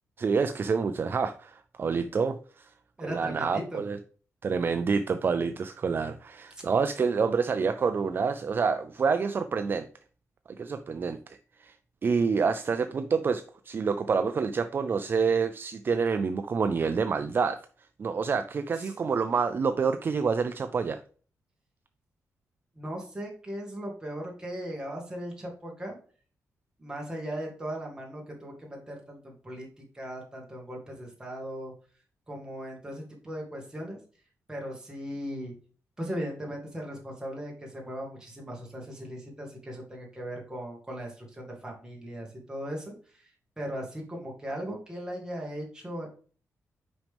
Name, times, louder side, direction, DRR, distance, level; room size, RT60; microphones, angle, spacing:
voice 1, 0.2-2.7 3.0-4.0 4.4-9.9 10.5-11.8 12.0-17.6 18.0-21.0, right 5 dB, 40° right, 9 dB, 0.4 m, -27 dB
voice 2, 3.0-3.8 6.6-6.7 18.8-18.9 22.8-26.0 26.8-29.7 29.9-31.7 32.3-34.0 34.5-35.5 36.0-43.3 43.6-46.1, equal, 15° right, -1 dB, 2.1 m, -38 dB
6.0 x 5.2 x 3.4 m, 0.42 s
wide cardioid pair, 120°, 6 cm